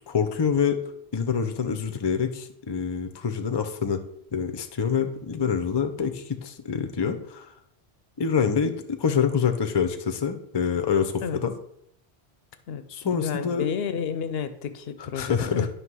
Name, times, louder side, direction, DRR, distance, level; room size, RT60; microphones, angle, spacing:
voice 1, 0.1-0.8 1.1-4.0 4.3-7.5 8.2-11.5 12.9-13.7 15.0-15.7, left 6 dB, 30° left, 8 dB, 0.5 m, -26 dB
voice 2, 13.1-15.7, left 7 dB, 75° left, 11 dB, 0.8 m, -31 dB
9.5 x 3.2 x 6.1 m, 0.74 s
omnidirectional pair, 1.1 m